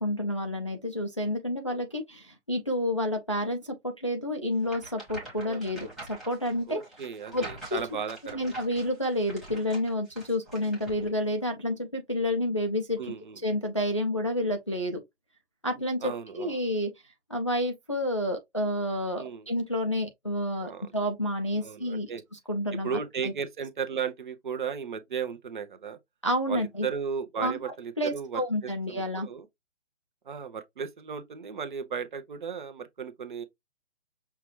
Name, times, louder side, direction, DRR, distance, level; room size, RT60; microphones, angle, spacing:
voice 1, 0.0-6.8 7.3-7.4 7.7-7.8 8.2-13.1 13.4-15.0 15.6-16.9 17.3-23.3 26.2-26.9 27.4-29.3, left 1 dB, 25° left, 0.3 m, -30 dB
sound 1, 4.6-11.1, right 2 dB, ahead, 1.1 m, -45 dB
voice 2, 6.7-8.5 13.0-13.4 16.0-16.6 19.2-19.5 20.6-20.9 21.6-22.2 22.8-26.0 26.5-29.5 30.3-33.4, right 6 dB, 40° right, 0.6 m, -35 dB
5.7 x 2.3 x 3.0 m
hypercardioid pair, 155°, 37 cm